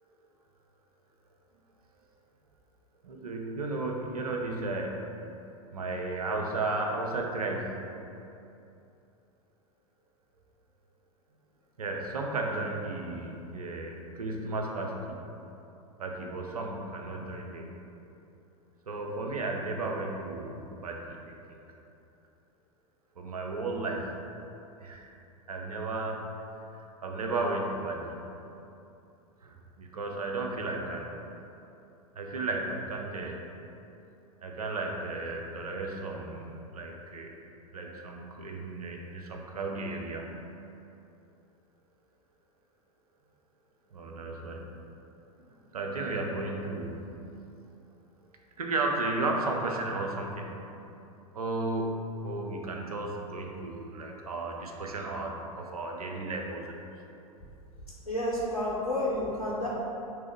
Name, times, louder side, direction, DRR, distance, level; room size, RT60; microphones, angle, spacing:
voice 1, 3.0-5.0 5.7-7.8 11.8-15.2 16.0-17.7 18.9-21.6 23.2-24.2 24.8-25.1 25.5-26.2 26.7-28.2 29.4-31.1 32.2-33.4 34.4-37.3 37.7-40.3 43.9-44.8 45.7-47.0 48.6-50.6 51.3-56.7, right 2 dB, 75° right, 1 dB, 0.6 m, -34 dB
voice 2, 58.1-59.7, left 1 dB, 90° left, -5 dB, 0.6 m, -30 dB
3.5 x 3.3 x 4.5 m, 2.8 s
figure-of-eight pair, 85°, 19 cm